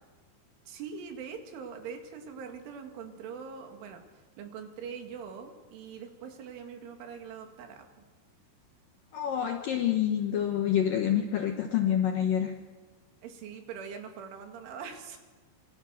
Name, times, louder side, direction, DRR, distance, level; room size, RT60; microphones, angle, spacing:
voice 1, 0.7-8.0 13.2-15.2, right 6 dB, 80° right, 5 dB, 4.5 m, -43 dB
voice 2, 9.1-12.6, left 10 dB, 75° left, 4 dB, 2.1 m, -27 dB
27.0 x 23.0 x 6.4 m, 1.4 s
omnidirectional pair, 5.6 m